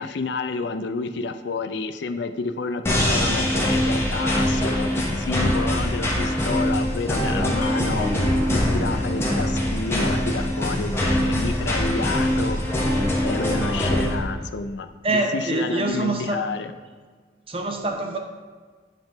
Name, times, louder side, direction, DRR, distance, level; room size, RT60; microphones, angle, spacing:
voice 1, 0.0-12.9 13.2-16.7, left 4 dB, 70° left, 9 dB, 0.5 m, -30 dB
sound 1, 2.9-14.1, left 1 dB, 15° left, 1.1 m, -23 dB
voice 2, 15.0-16.5 17.5-18.2, right 2 dB, 30° right, 4 dB, 0.8 m, -25 dB
9.2 x 4.0 x 5.0 m, 1.5 s
head